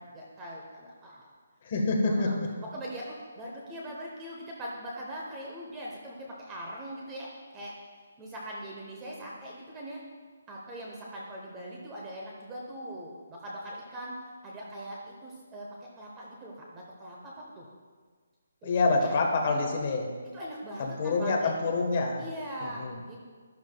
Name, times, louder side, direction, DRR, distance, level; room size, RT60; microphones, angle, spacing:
voice 1, 0.0-1.3 2.1-7.7 8.2-10.0 10.5-17.7 18.6-18.7 19.0-19.2 19.4-19.7 20.3-21.5 22.2-22.8 23.1-23.2, right 1 dB, 10° right, -3 dB, 0.8 m, -41 dB
voice 2, 1.6-2.3 18.6-20.1 20.8-22.2 22.6-23.0, left 3 dB, 25° left, 1 dB, 1.2 m, -27 dB
12.5 x 11.5 x 2.2 m, 1.5 s
hypercardioid pair, 180°, 0 cm